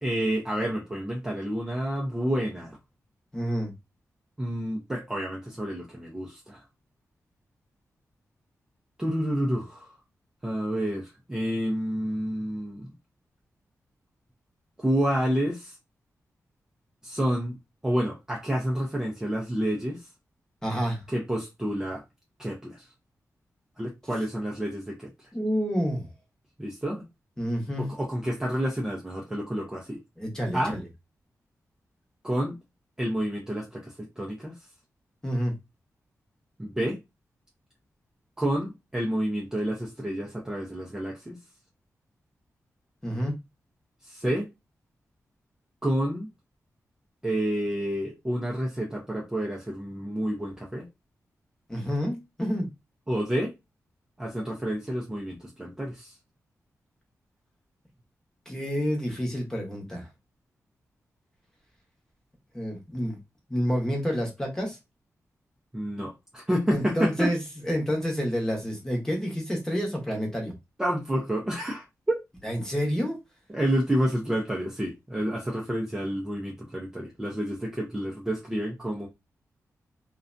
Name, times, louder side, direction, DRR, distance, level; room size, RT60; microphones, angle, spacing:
voice 1, 0.0-2.8 4.4-6.6 9.0-9.9 10.4-12.9 14.8-15.7 17.0-17.5 17.8-20.0 21.1-22.0 22.4-22.9 23.8-25.1 26.6-27.1 27.8-30.0 30.5-30.8 32.2-32.6 33.0-34.5 36.6-37.0 38.4-41.4 44.1-44.5 45.8-46.3 47.2-50.9 53.1-53.5 54.2-56.1 65.7-67.3 70.8-72.2 73.5-79.1, equal, 10° right, 0.5 m, -29 dB
voice 2, 3.3-3.7 20.6-21.0 25.3-26.1 27.4-27.9 30.2-30.8 35.2-35.5 43.0-43.4 51.7-52.7 58.5-60.1 62.5-63.2 63.5-64.8 66.7-67.4 67.6-70.5 72.4-73.2, equal, 10° left, 0.9 m, -28 dB
2.4 x 2.2 x 2.5 m
wide cardioid pair, 150°, 6 cm